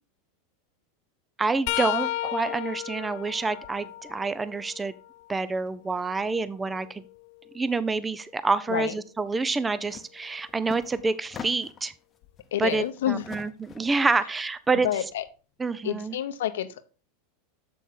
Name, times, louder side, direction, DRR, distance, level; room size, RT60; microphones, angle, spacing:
voice 1, 1.4-4.9 5.3-7.0 7.5-11.9 12.6-14.9 15.6-16.1, right 3 dB, 15° right, 15 dB, 0.5 m, -27 dB
sound 1, 1.7-5.4 6.0-7.9 10.8-11.0 12.2-12.4 13.7-13.8, left 16 dB, 60° left, 0.4 m, -35 dB
sound 2, 9.8-10.1 10.4-11.9 12.4-14.0, left 6 dB, 25° left, 0.9 m, -43 dB
voice 2, 12.5-13.3 14.8-15.2 15.8-16.8, left 11 dB, 80° left, 10 dB, 0.8 m, -28 dB
7.1 x 6.0 x 3.8 m, 0.35 s
hypercardioid pair, 110°, 0 cm